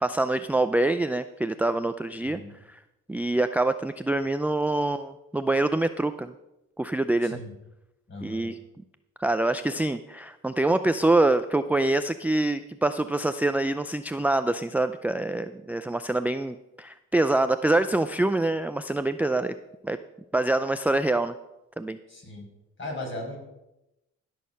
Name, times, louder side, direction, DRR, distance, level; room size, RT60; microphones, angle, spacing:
voice 1, 0.0-2.4 2.7-2.8 3.1-6.3 6.8-7.4 8.2-8.6 9.2-19.6 19.8-20.0 20.3-21.3 21.8-22.0, right 2 dB, 5° right, 10 dB, 0.4 m, -25 dB
voice 2, 7.2-7.5 8.1-8.5 22.1-22.5 22.8-23.4, left 2 dB, 40° left, -1 dB, 5.4 m, -37 dB
15.5 x 6.5 x 5.7 m, 0.93 s
cardioid pair, 90°, 30 cm